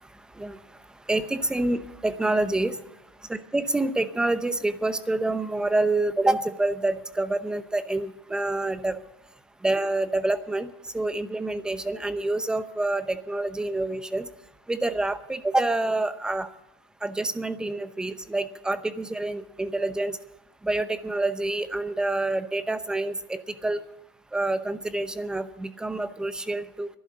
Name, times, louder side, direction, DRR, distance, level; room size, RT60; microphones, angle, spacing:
voice 1, 1.1-2.8 3.3-9.0 9.6-10.7 10.9-14.3 14.7-16.5 17.0-20.2 20.6-23.8 24.3-26.9, right 2 dB, 5° right, 12 dB, 0.7 m, -27 dB
12.0 x 11.0 x 8.6 m, 0.85 s
supercardioid pair, 145°, 12 cm